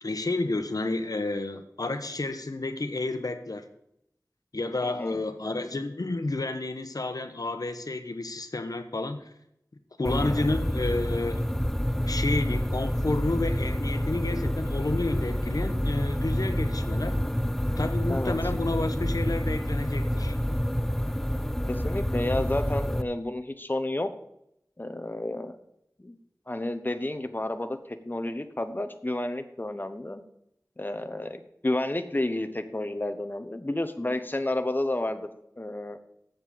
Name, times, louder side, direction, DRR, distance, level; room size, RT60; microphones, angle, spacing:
voice 1, 0.0-3.6 4.5-9.3 10.0-11.5 12.0-17.2 17.8-20.4, left 2 dB, 75° left, 9 dB, 1.1 m, -30 dB
voice 2, 4.8-5.2 10.0-10.5 18.1-18.4 21.7-24.1 24.8-25.6 26.0-26.2 26.5-30.2 30.8-35.3 35.6-36.0, left 1 dB, 30° left, 9 dB, 1.0 m, -31 dB
sound 1, 10.0-23.0, equal, 5° left, 0.5 m, -28 dB
7.8 x 7.4 x 7.0 m, 0.77 s
wide cardioid pair, 50°, 6 cm